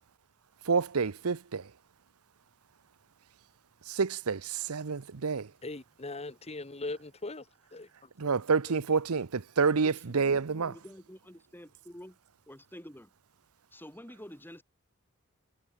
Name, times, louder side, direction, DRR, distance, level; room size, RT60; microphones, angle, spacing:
voice 1, 0.7-1.6 3.9-5.5 8.2-10.7, right 5 dB, 75° right, 0.8 m, -28 dB
voice 2, 5.6-7.4 7.7-8.4 8.7-8.8, left 2 dB, 30° left, 1.5 m, -40 dB
voice 3, 9.8-12.2 12.5-13.1 13.7-14.6, equal, 10° left, 7.4 m, -49 dB
head